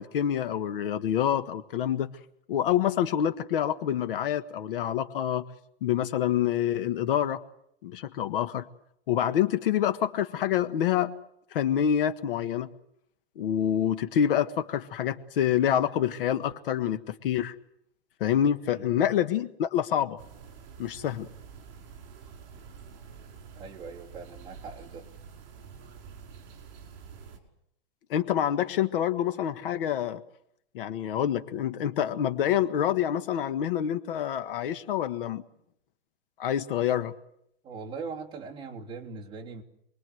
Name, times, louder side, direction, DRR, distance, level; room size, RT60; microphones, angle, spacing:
voice 1, 0.0-2.1 2.5-5.4 5.8-7.4 7.8-8.7 9.1-11.1 11.5-12.7 13.4-17.5 18.2-20.2 20.8-21.3 28.1-30.2 30.7-35.4 36.4-37.1, left 10 dB, 60° left, 10 dB, 1.6 m, -27 dB
sound 1, 20.2-27.4, right 6 dB, 45° right, 5.4 m, -48 dB
voice 2, 23.6-25.1 37.6-39.6, right 4 dB, 15° right, -3 dB, 3.0 m, -40 dB
28.0 x 22.0 x 8.0 m, 0.77 s
supercardioid pair, 180°, 31 cm